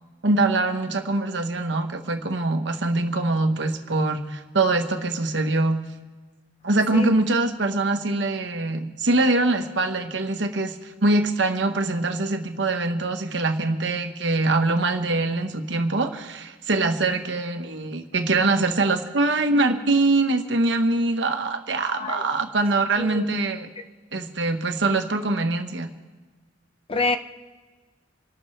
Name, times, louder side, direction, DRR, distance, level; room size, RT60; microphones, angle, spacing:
voice 1, 0.2-5.8 6.6-23.7 24.1-25.9, right 2 dB, 65° right, 6 dB, 1.2 m, -23 dB
voice 2, 21.9-22.2 23.0-23.4 26.9-27.2, left 3 dB, 30° left, 8 dB, 0.6 m, -26 dB
27.5 x 12.0 x 3.3 m, 1.3 s
head